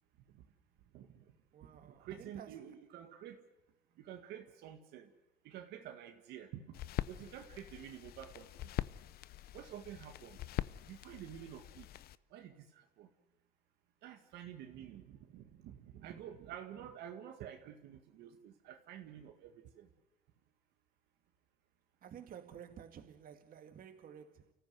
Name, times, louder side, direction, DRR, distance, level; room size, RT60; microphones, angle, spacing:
voice 1, 0.9-1.2 1.6-3.4 4.0-5.1 5.4-6.8 7.1-8.7 9.5-10.4 10.9-11.9 12.3-13.1 14.0-19.9, right 10 dB, 85° right, 1.9 m, -50 dB
voice 2, 1.5-2.5 22.0-24.5, right 8 dB, 55° right, 2.3 m, -52 dB
sound 1, 6.7-12.1, left 13 dB, 65° left, 0.7 m, -43 dB
29.5 x 15.0 x 8.0 m
cardioid pair, 110°, 17 cm